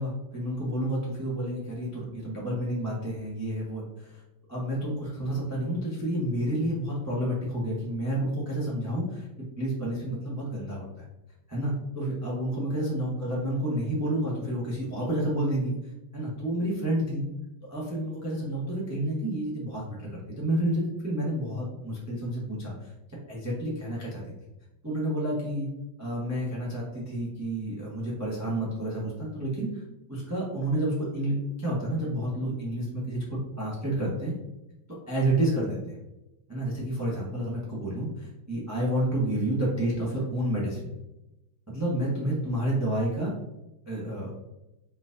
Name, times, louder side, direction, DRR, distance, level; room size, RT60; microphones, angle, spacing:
voice 1, 0.0-4.2 4.5-11.1 11.5-17.2 17.7-22.9 23.3-24.2 24.8-25.7 26.0-29.8 30.1-34.3 35.1-36.0 36.5-40.9 41.7-43.3 43.9-44.3, right 1 dB, 15° right, -5 dB, 0.7 m, -30 dB
4.3 x 4.0 x 2.6 m, 0.95 s
omnidirectional pair, 2.2 m